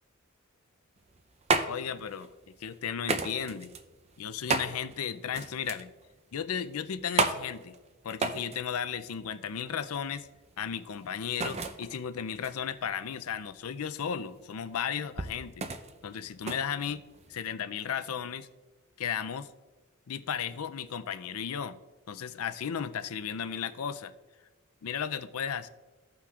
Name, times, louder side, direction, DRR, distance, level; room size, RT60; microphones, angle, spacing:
sound 1, 1.0-17.5, right 3 dB, 30° right, 0.5 m, -35 dB
voice 1, 1.7-2.3 2.6-3.7 4.2-5.9 6.3-7.7 8.0-10.3 10.6-15.7 16.0-17.0 17.3-18.5 19.0-19.5 20.1-21.8 22.1-24.1 24.8-25.7, left 7 dB, 80° left, 12 dB, 0.5 m, -35 dB
15.5 x 5.8 x 2.4 m, 1.2 s
head